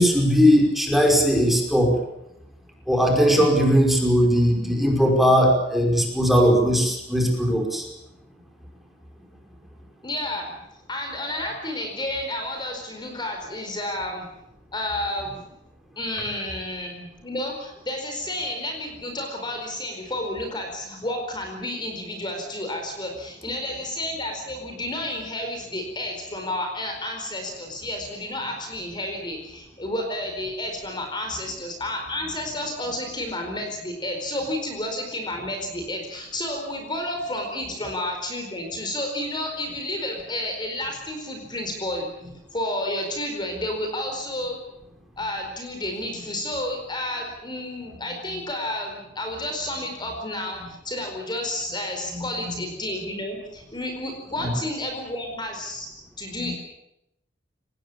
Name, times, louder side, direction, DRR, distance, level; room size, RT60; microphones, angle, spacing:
voice 1, 0.0-1.9 2.9-7.9 52.1-52.2 54.4-54.5 56.4-56.5, equal, ahead, 1 dB, 5.4 m, -19 dB
voice 2, 10.0-10.5 10.9-14.3 14.7-15.5 16.0-42.1 42.5-44.6 45.2-55.9 56.2-56.5, left 1 dB, 25° left, 3 dB, 4.6 m, -31 dB
24.5 x 20.0 x 8.7 m, 0.84 s
head